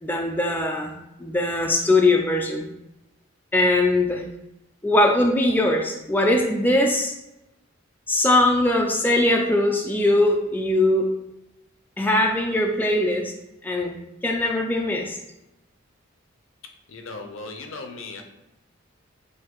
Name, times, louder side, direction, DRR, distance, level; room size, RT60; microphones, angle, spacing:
voice 1, 0.0-0.9 1.2-2.7 3.5-4.2 4.8-7.1 8.1-11.1 12.0-13.3 13.6-14.0 14.2-15.2, left 1 dB, 10° left, 1 dB, 0.3 m, -21 dB
voice 2, 16.9-18.2, left 3 dB, 65° left, 4 dB, 0.6 m, -37 dB
6.4 x 2.6 x 2.9 m, 0.92 s
head